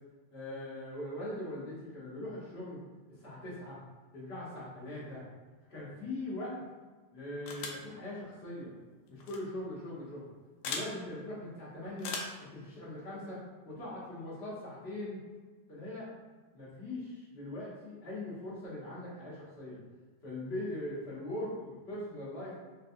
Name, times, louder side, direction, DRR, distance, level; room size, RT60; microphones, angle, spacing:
voice 1, 0.3-2.8 3.1-3.8 4.1-5.2 5.7-6.6 7.1-8.7 9.1-10.2 10.6-12.1 12.5-13.4 13.6-15.2 15.7-16.1 16.5-19.8 20.2-22.6, left 1 dB, 45° left, -8 dB, 0.9 m, -41 dB
sound 1, 7.5-7.9 9.2-9.4 10.6-10.9 12.0-12.4, left 4 dB, 90° left, 1.4 m, -38 dB
3.2 x 3.1 x 2.6 m, 1.3 s
omnidirectional pair, 2.3 m